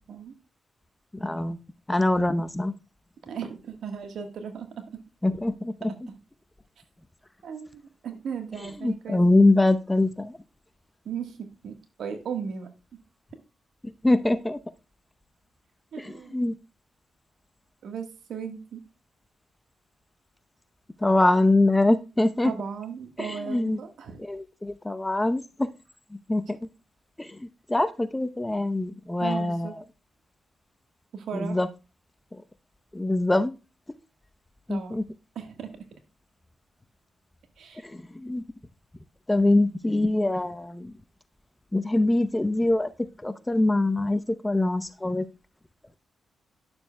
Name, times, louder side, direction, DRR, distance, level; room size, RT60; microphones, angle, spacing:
voice 1, 1.1-1.6 1.9-2.7 5.2-5.7 8.8-10.4 14.0-14.6 16.0-16.5 21.0-22.5 23.2-23.8 24.2-25.7 26.3-26.6 27.2-29.7 31.3-31.7 32.3-32.4 32.9-33.6 34.7-35.0 37.8-38.4 39.3-40.9 41.7-42.9 43.2-45.3, left 2 dB, 15° left, 11 dB, 0.7 m, -24 dB
voice 2, 3.2-4.8 5.9-6.1 7.4-9.5 11.0-12.7 15.9-16.4 17.8-18.8 22.4-24.2 29.2-29.7 31.1-31.6 34.7-35.0 35.3-35.8 37.6-37.9, right 7 dB, 75° right, 6 dB, 1.4 m, -36 dB
11.0 x 6.9 x 2.2 m, 0.29 s
supercardioid pair, 50°, 0 cm